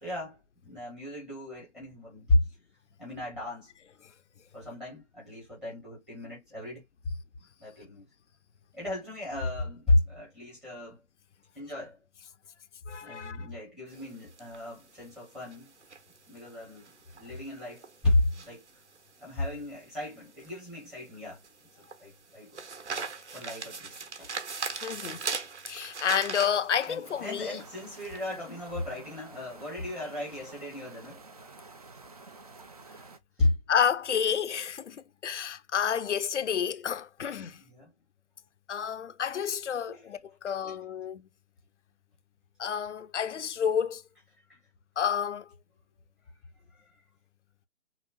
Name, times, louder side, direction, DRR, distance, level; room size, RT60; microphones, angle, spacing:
voice 1, 0.0-2.5 3.0-3.7 4.5-6.8 7.6-8.1 8.7-11.0 11.5-12.0 13.0-15.7 16.3-18.6 19.2-21.4 21.8-22.6 23.3-24.3 26.9-31.2 33.4-33.6 37.6-37.9 39.9-40.1 40.7-40.8 44.5-44.6 46.7-46.9, left 2 dB, ahead, 0.8 m, -33 dB
voice 2, 12.9-13.5 24.8-25.2 25.7-27.6 33.7-37.6 38.7-40.2 40.4-41.2 42.6-44.0 45.0-45.5, left 8 dB, 80° left, 0.7 m, -30 dB
sound 1, 13.9-28.3, right 5 dB, 75° right, 1.2 m, -40 dB
sound 2, 27.0-33.2, right 3 dB, 35° right, 0.5 m, -50 dB
5.8 x 2.0 x 2.4 m
hypercardioid pair, 160°, 35 cm